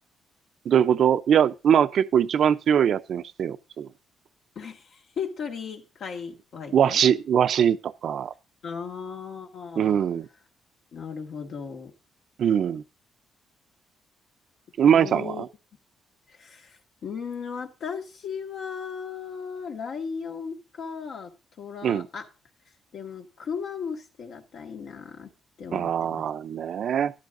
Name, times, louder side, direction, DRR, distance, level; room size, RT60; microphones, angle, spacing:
voice 1, 0.7-3.9 6.7-8.3 9.8-10.3 12.4-12.8 14.8-15.5 21.8-22.1 25.7-27.1, right 8 dB, 65° right, 0.6 m, -22 dB
voice 2, 4.6-7.0 8.6-10.0 10.9-11.9 14.9-15.5 16.3-22.3 22.9-25.3 25.6-26.2, left 6 dB, 65° left, 1.9 m, -36 dB
13.5 x 11.5 x 2.6 m
cardioid pair, 90°, 0 cm